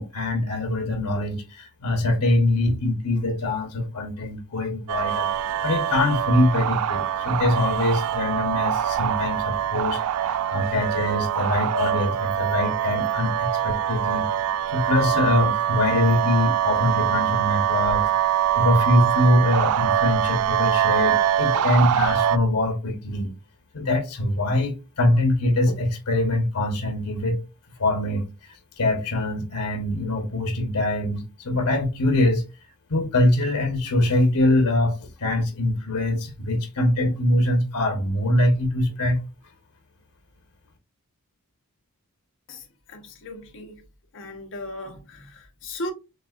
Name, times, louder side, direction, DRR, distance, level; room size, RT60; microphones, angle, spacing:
voice 1, 0.0-5.3 5.6-14.3 14.7-18.1 18.5-23.3 23.7-27.4 27.8-28.2 28.8-32.4 32.9-39.2, left 1 dB, 85° left, 1.2 m, -23 dB
sound 1, 4.9-22.4, right 10 dB, 70° right, 0.3 m, -24 dB
voice 2, 42.9-43.8 44.1-45.9, left 1 dB, 60° left, 1.2 m, -37 dB
6.6 x 2.6 x 2.4 m
head